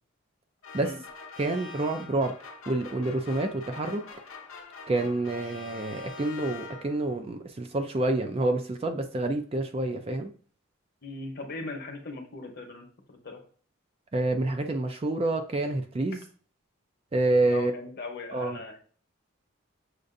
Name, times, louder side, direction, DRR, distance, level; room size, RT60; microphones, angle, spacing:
sound 1, 0.6-7.2, left 4 dB, 75° left, 0.7 m, -44 dB
voice 1, 1.4-4.0 4.9-10.3 14.1-16.2 17.1-17.7 18.3-18.6, right 2 dB, 30° right, 5 dB, 0.4 m, -28 dB
voice 2, 11.0-13.4 17.4-18.8, left 3 dB, 50° left, 2 dB, 0.9 m, -39 dB
6.5 x 2.5 x 2.5 m, 0.43 s
head